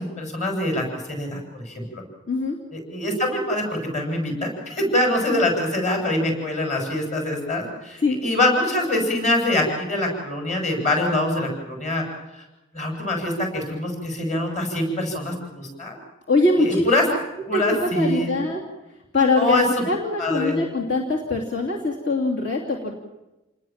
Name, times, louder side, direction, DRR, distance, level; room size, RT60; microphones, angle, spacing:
voice 1, 0.0-1.4 1.7-2.0 2.7-12.0 12.3-12.4 12.7-16.0 16.6-17.0 17.5-18.4 19.4-19.8 20.2-20.6, left 1 dB, 35° left, 2 dB, 7.9 m, -24 dB
voice 2, 16.3-16.8 17.5-18.6 19.1-22.9, left 2 dB, 65° left, -1 dB, 3.2 m, -22 dB
29.0 x 20.0 x 7.5 m, 1.0 s
head